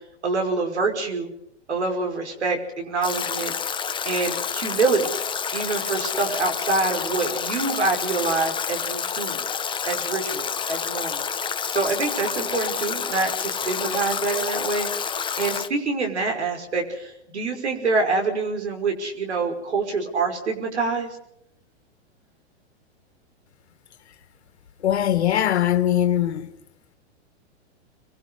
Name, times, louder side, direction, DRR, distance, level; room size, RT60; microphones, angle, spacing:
voice 1, 0.2-1.3 1.7-3.5 4.0-5.1 5.5-9.4 9.8-11.3 11.7-21.2, right 3 dB, 80° right, 5.6 m, -26 dB
Stream / Drip / Trickle dribble, 3.0-15.7, left 7 dB, 15° left, 1.1 m, -29 dB
voice 2, 24.8-26.5, left 11 dB, 75° left, 1.9 m, -21 dB
27.0 x 22.5 x 5.0 m
hypercardioid pair, 115°, 33 cm